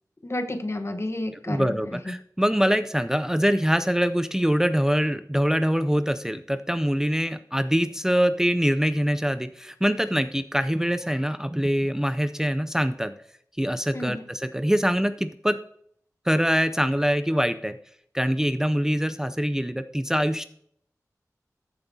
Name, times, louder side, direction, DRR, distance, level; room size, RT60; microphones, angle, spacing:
voice 1, 0.2-2.1 13.9-14.3, left 1 dB, 45° left, 6 dB, 1.0 m, -31 dB
voice 2, 1.5-13.1 13.6-15.6 16.3-17.8 18.1-20.5, equal, 10° right, 11 dB, 0.4 m, -24 dB
14.0 x 6.9 x 2.7 m, 0.67 s
wide cardioid pair, 50°, 6 cm